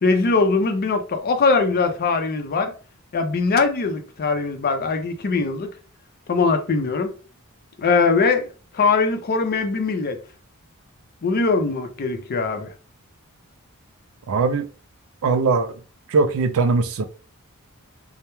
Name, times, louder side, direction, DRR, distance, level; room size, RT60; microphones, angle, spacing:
voice 1, 0.0-2.7 3.1-5.7 6.3-7.1 7.8-8.5 8.7-10.2 11.2-12.7, left 4 dB, 45° left, 0.4 m, -21 dB
voice 2, 14.3-14.7 15.2-15.7 16.1-17.0, right 4 dB, 65° right, 0.4 m, -20 dB
2.2 x 2.0 x 2.9 m
head